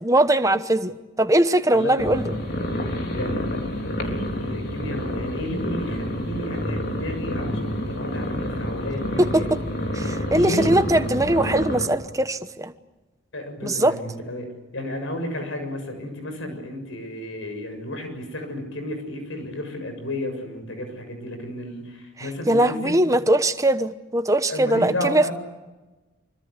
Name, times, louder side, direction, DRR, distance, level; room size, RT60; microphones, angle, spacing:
voice 1, 0.0-2.3 9.2-9.4 9.9-12.7 13.6-13.9 22.5-25.3, right 1 dB, 15° right, 10 dB, 1.0 m, -21 dB
voice 2, 1.7-2.0 3.1-9.7 10.3-10.8 13.3-23.0 24.5-25.3, left 1 dB, 85° left, 6 dB, 7.0 m, -32 dB
sound 1, 2.0-11.9, left 1 dB, 55° left, 4.0 m, -28 dB
25.5 x 24.5 x 8.2 m, 1.2 s
head